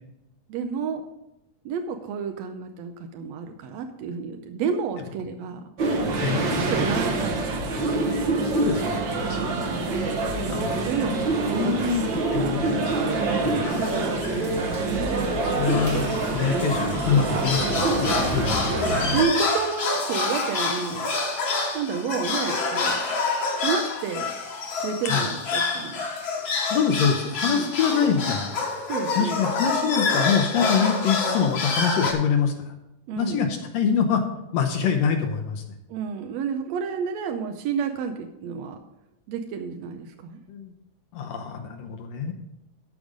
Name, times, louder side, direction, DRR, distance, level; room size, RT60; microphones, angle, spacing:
voice 1, 0.5-1.0 1.6-5.6 6.7-7.8 9.3-9.9 10.5-12.6 13.3-15.3 19.1-21.1 21.7-23.0 23.6-24.3 24.8-26.1 27.4-27.7 28.8-29.4 33.1-33.4 35.9-38.8 39.3-40.4 42.3-42.4, right 6 dB, 80° right, 6 dB, 1.6 m, -30 dB
sound 1, 5.8-19.2, right 2 dB, 60° right, 1.2 m, -25 dB
voice 2, 6.2-6.6 8.5-9.5 10.5-11.2 11.5-12.8 13.4-13.7 15.4-18.7 25.1-25.3 26.7-28.5 29.2-32.7 33.2-34.2 34.5-35.6 40.5-40.7 41.1-42.3, left 6 dB, 70° left, 5 dB, 1.8 m, -25 dB
sound 2, 13.6-14.4 14.7-14.8 15.1-15.3 15.6-32.1, left 4 dB, 50° left, 1.7 m, -27 dB
13.5 x 5.2 x 5.0 m, 0.89 s
omnidirectional pair, 3.7 m